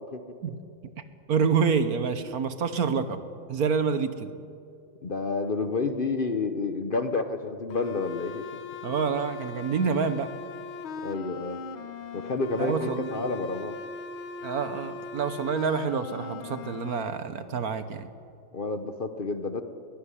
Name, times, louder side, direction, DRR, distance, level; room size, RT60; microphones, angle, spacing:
voice 1, 1.3-3.2 3.5-4.3 8.8-10.3 12.6-13.3 14.4-18.1, right 5 dB, 55° right, 11 dB, 1.3 m, -27 dB
voice 2, 5.0-8.6 11.0-11.6 12.1-13.8 18.5-19.6, left 3 dB, 45° left, 8 dB, 0.7 m, -30 dB
sound 1, 7.7-17.0, left 5 dB, 85° left, 1.9 m, -39 dB
22.0 x 15.0 x 9.9 m, 2.4 s
omnidirectional pair, 2.1 m